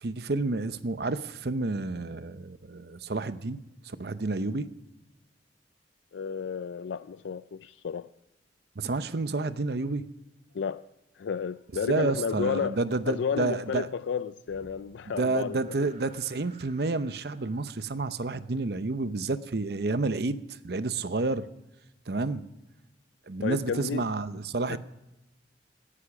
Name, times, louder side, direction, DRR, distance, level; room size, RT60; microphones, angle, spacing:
voice 1, 0.0-4.7 8.8-10.0 11.8-13.9 15.2-21.5 22.1-22.5 23.3-24.8, right 3 dB, 60° right, 13 dB, 0.7 m, -30 dB
voice 2, 6.1-8.1 10.5-10.8 11.1-12.8 13.1-15.9 23.4-24.0 24.7-24.8, left 6 dB, 80° left, 13 dB, 0.4 m, -32 dB
sound 1, 14.5-18.8, right 2 dB, 40° right, 3.4 m, -57 dB
17.0 x 10.0 x 6.0 m, 0.95 s
head